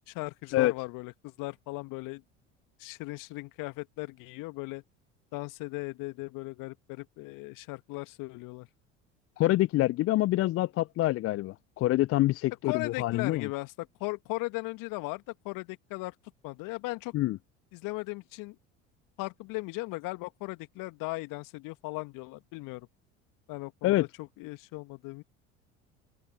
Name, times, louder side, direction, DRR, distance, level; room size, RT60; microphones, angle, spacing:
voice 1, 0.1-2.2 2.8-4.8 5.3-8.7 12.6-16.1 16.4-17.1 17.7-18.6 19.2-22.9 23.5-25.2, left 23 dB, 55° left, 2.0 m, -37 dB
voice 2, 9.4-13.5 17.1-17.4 23.8-24.0, left 16 dB, 35° left, 0.5 m, -26 dB
figure-of-eight pair, 65°, 39 cm